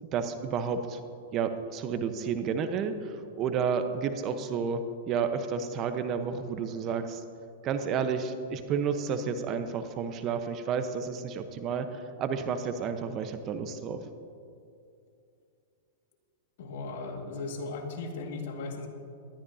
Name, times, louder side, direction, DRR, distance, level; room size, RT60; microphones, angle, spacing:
voice 1, 0.0-1.0 1.3-7.2 7.6-14.0, right 6 dB, 35° right, 8 dB, 1.0 m, -31 dB
voice 2, 16.6-18.9, left 3 dB, 65° left, 2 dB, 2.1 m, -37 dB
19.5 x 13.0 x 2.8 m, 2.5 s
hypercardioid pair, 120°, 0 cm